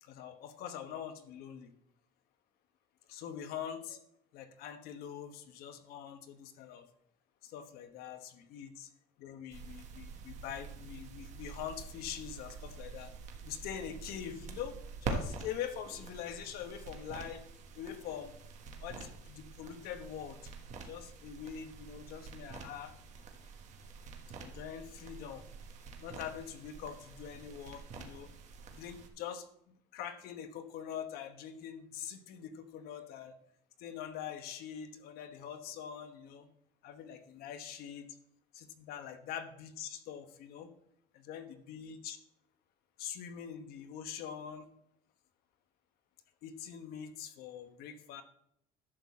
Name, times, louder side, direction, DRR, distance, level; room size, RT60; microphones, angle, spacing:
voice 1, 0.0-1.7 3.1-4.0 4.3-6.9 7.4-8.9 9.2-13.1 13.4-17.5 17.7-18.3 18.8-20.5 20.8-22.9 24.4-25.5 26.0-28.3 28.7-33.3 33.8-36.5 36.8-38.1 38.5-40.7 41.1-42.2 43.0-44.7 46.4-48.2, left 9 dB, 60° left, 9 dB, 1.1 m, -44 dB
sound 1, 9.5-29.1, right 4 dB, 40° right, 1.4 m, -46 dB
11.0 x 4.1 x 7.3 m, 0.74 s
cardioid pair, 160°, 18 cm